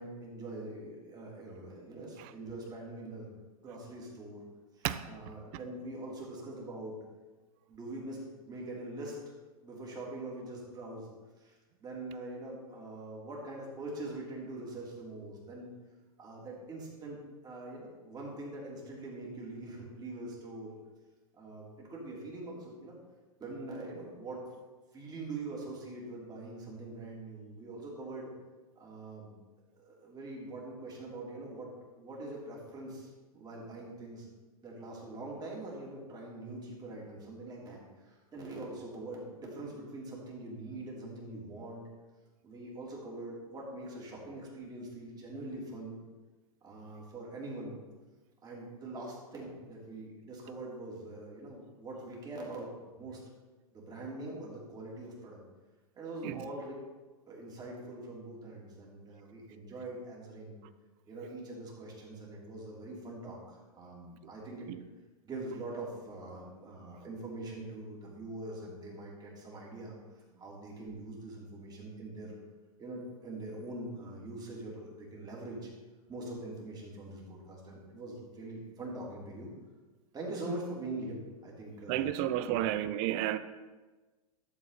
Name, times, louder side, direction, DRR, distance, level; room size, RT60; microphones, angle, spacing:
voice 1, 0.0-3.3 3.6-4.4 4.7-7.0 7.7-9.2 9.6-11.1 11.4-15.7 16.2-17.2 17.4-20.7 21.3-23.0 23.4-24.5 24.9-28.3 28.7-29.3 29.8-31.7 32.0-34.3 34.6-41.8 42.4-46.0 46.6-47.8 48.4-52.7 53.0-53.2 53.7-55.4 55.9-56.7 57.3-60.6 61.0-64.7 65.2-72.3 72.8-75.7 76.1-79.5 80.1-82.6, right 2 dB, 20° right, 3.4 m, -43 dB
voice 2, 81.9-83.4, right 12 dB, 40° right, 0.7 m, -32 dB
13.0 x 7.3 x 4.2 m
hypercardioid pair, 110°, 19 cm